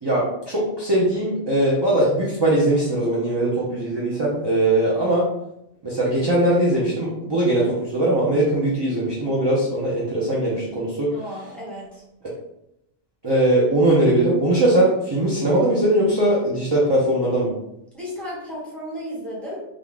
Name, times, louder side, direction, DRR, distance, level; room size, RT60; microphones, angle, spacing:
voice 1, 0.0-5.3 5.8-11.1 12.2-12.3 13.2-17.5, right 1 dB, 30° right, -6 dB, 0.5 m, -20 dB
voice 2, 11.1-12.0 17.9-19.6, equal, ahead, -7 dB, 1.2 m, -34 dB
3.7 x 2.4 x 3.5 m, 0.82 s
omnidirectional pair, 1.3 m